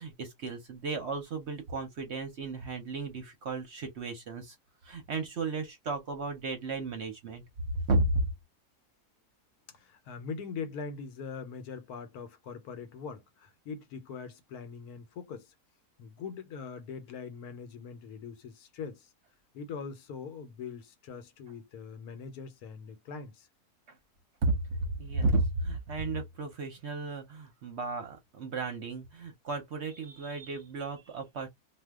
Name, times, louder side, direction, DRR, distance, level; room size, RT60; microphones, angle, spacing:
voice 1, 0.0-4.6 4.8-7.4 7.9-8.2 24.4-24.5 25.0-31.5, right 2 dB, 60° right, 0.8 m, -33 dB
voice 2, 9.7-15.5 16.0-19.1 19.5-23.5, left 5 dB, 75° left, 1.2 m, -42 dB
2.7 x 2.1 x 3.4 m
omnidirectional pair, 1.6 m